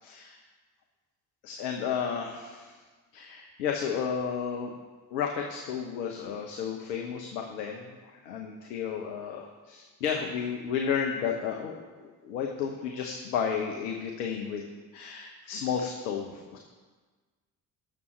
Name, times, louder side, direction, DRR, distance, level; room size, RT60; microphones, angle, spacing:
voice 1, 0.0-0.4 1.4-2.8 3.1-4.7 5.1-14.7 14.9-16.6, left 7 dB, 75° left, 2 dB, 1.1 m, -32 dB
19.5 x 7.0 x 3.3 m, 1.4 s
figure-of-eight pair, 45°, 50 cm